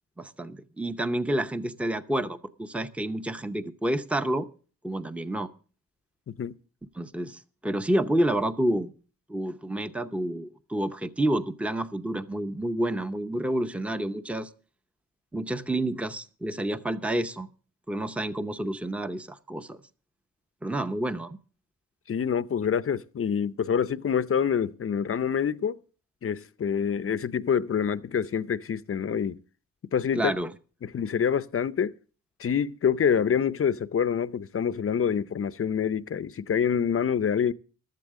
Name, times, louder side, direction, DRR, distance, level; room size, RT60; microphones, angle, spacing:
voice 1, 0.2-4.5 4.8-5.5 6.9-8.9 9.3-14.5 15.3-17.5 17.9-19.8 20.6-21.4 30.1-30.5, right 1 dB, 5° right, 0.7 m, -29 dB
voice 2, 22.1-25.8 26.2-29.4 29.9-30.3 30.8-31.9 32.4-37.5, left 7 dB, 40° left, 0.6 m, -26 dB
15.5 x 12.5 x 3.7 m
cardioid pair, 95°, 34 cm